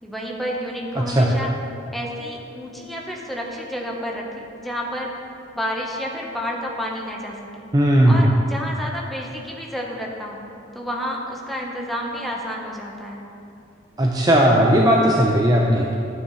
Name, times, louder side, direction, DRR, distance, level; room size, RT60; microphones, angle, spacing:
voice 1, 0.0-1.5 1.9-5.1 5.6-7.7 8.0-10.4 10.7-13.2, equal, ahead, -2 dB, 1.1 m, -30 dB
voice 2, 1.0-1.3 7.7-8.2 14.0-15.9, right 1 dB, 20° right, -1 dB, 0.6 m, -17 dB
12.0 x 8.8 x 3.2 m, 2.5 s
head